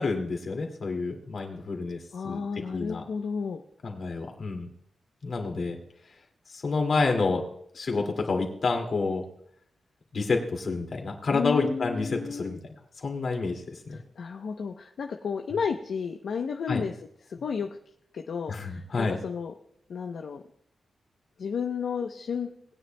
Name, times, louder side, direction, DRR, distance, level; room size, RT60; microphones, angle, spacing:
voice 1, 0.0-3.0 3.8-4.7 5.2-5.8 6.5-7.4 7.7-9.2 10.1-12.6 13.0-14.0 16.7-16.8 18.5-19.2, left 3 dB, 50° left, 2 dB, 2.3 m, -29 dB
voice 2, 2.1-3.6 11.3-12.6 13.9-17.0 17.2-17.7 18.1-19.5 19.9-20.4 21.4-22.5, left 6 dB, 70° left, 3 dB, 0.7 m, -32 dB
20.5 x 9.6 x 2.2 m, 0.69 s
wide cardioid pair, 150°, 0 cm